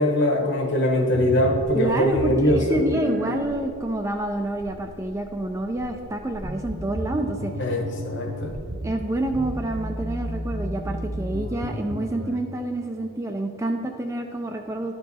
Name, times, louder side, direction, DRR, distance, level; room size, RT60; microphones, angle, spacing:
voice 1, 0.0-2.8 7.6-8.5, left 1 dB, 50° left, 2 dB, 1.1 m, -22 dB
sound 1, 1.1-12.4, equal, 45° right, 0.7 m, -33 dB
voice 2, 1.7-7.5 8.8-14.9, right 1 dB, 15° right, 4 dB, 0.3 m, -28 dB
11.0 x 4.5 x 4.1 m, 2.4 s
head